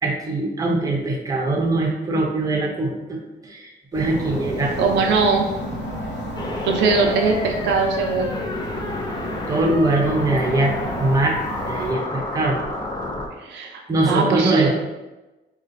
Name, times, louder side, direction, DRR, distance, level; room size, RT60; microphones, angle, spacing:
voice 1, 0.0-4.8 9.5-10.7 11.0-12.6 13.9-14.7, right 2 dB, 20° right, -1 dB, 0.6 m, -22 dB
sound 1, 3.9-11.9, equal, 80° left, 1.4 m, -32 dB
voice 2, 4.8-5.5 6.6-8.3 13.4-14.7, right 4 dB, 80° right, 2 dB, 0.5 m, -20 dB
sound 2, 6.4-13.3, left 2 dB, 25° left, 0.4 m, -30 dB
3.9 x 2.3 x 2.6 m, 1.1 s
cardioid pair, 125°, 18 cm